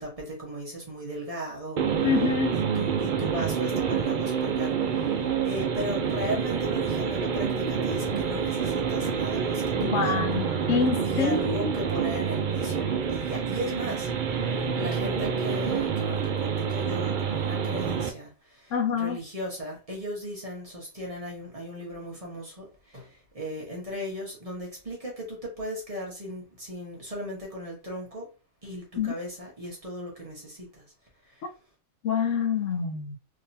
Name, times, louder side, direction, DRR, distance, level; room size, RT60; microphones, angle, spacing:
voice 1, 0.0-1.8 2.5-5.1 5.4-10.6 11.0-12.8 13.1-14.1 14.7-18.3 18.9-22.6 22.9-23.1 23.3-28.2 28.6-30.8, equal, 30° right, 1.2 m, -36 dB
sound 1, 1.8-18.1, right 6 dB, 70° right, 0.4 m, -27 dB
voice 2, 2.0-2.5 9.8-11.7 18.7-19.2 29.0-29.1 32.0-33.2, left 6 dB, 70° left, 1.0 m, -26 dB
3.7 x 2.8 x 2.7 m
omnidirectional pair, 1.4 m